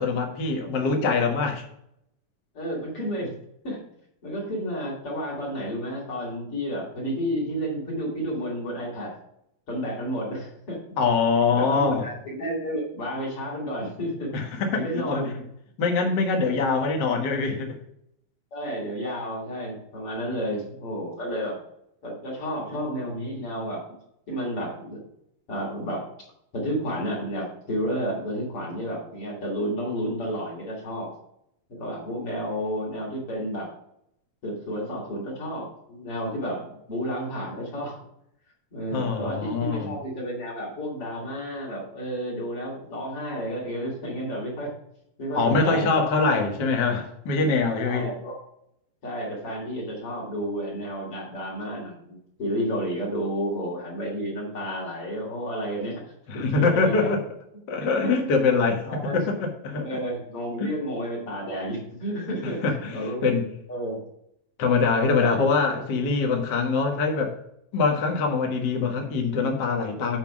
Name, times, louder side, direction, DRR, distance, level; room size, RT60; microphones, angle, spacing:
voice 1, 0.0-1.6 11.0-12.0 14.3-15.3 15.8-17.7 38.9-39.9 45.3-48.1 56.3-57.2 57.7-59.9 60.6-60.7 62.3-63.5 64.6-67.3 67.7-70.2, left 4 dB, 80° left, 2 dB, 0.9 m, -24 dB
voice 2, 2.5-3.3 3.6-3.8 4.2-9.1 9.7-11.0 11.5-14.3 14.7-15.4 18.5-21.6 22.0-23.9 24.3-25.0 25.5-26.1 26.5-31.1 31.7-33.7 34.4-38.0 38.7-44.7 45.2-45.9 47.8-48.3 49.0-56.0 56.3-57.1 57.8-58.1 58.8-59.1 59.8-63.2 63.7-64.0 65.1-65.5, equal, 40° left, -3 dB, 2.9 m, -31 dB
7.8 x 4.9 x 5.9 m, 0.76 s
omnidirectional pair, 4.2 m